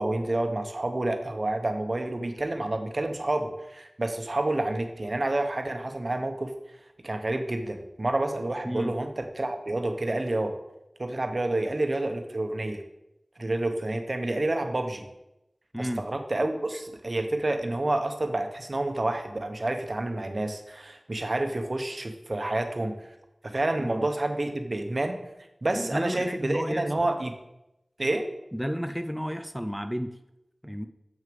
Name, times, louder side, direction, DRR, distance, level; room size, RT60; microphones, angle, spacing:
voice 1, 0.0-6.5 7.0-10.5 11.0-12.8 13.4-15.1 15.8-22.9 23.4-25.2 25.6-27.3 28.0-28.2, right 2 dB, 50° right, 6 dB, 1.1 m, -29 dB
voice 2, 15.7-16.1 23.8-24.1 25.7-26.8 28.5-30.2 30.6-30.9, equal, ahead, 8 dB, 0.5 m, -32 dB
7.5 x 6.4 x 5.3 m, 0.89 s
wide cardioid pair, 55°, 0 cm